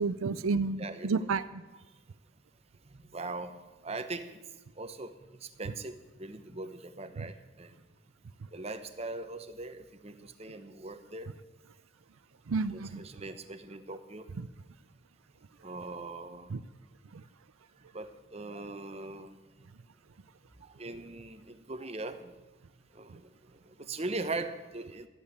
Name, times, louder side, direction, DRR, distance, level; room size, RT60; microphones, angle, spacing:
voice 1, 0.0-1.6 7.2-7.3 12.5-13.0 14.4-14.5 16.5-16.6 17.1-17.2, right 4 dB, 85° right, 14 dB, 0.5 m, -31 dB
voice 2, 0.8-1.3 2.9-4.4 4.8-7.7 8.5-11.3 12.7-14.3 15.6-16.5 17.9-19.4 20.6-22.3 22.9-23.3 23.6-25.1, right 2 dB, 30° right, 10 dB, 0.9 m, -40 dB
14.0 x 8.7 x 9.7 m, 1.1 s
head